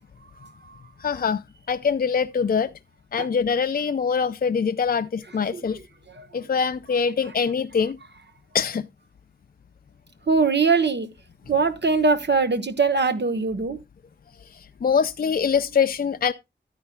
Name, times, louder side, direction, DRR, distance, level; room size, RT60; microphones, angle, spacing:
voice 1, 1.0-1.4 1.7-2.7 3.1-5.8 6.3-8.0 8.5-8.8 14.5-16.3, left 6 dB, 50° left, 0.4 m, -23 dB
voice 2, 10.3-11.1 11.5-13.8, right 4 dB, 60° right, 1.1 m, -21 dB
12.0 x 9.6 x 2.2 m
cardioid pair, 45°, 20 cm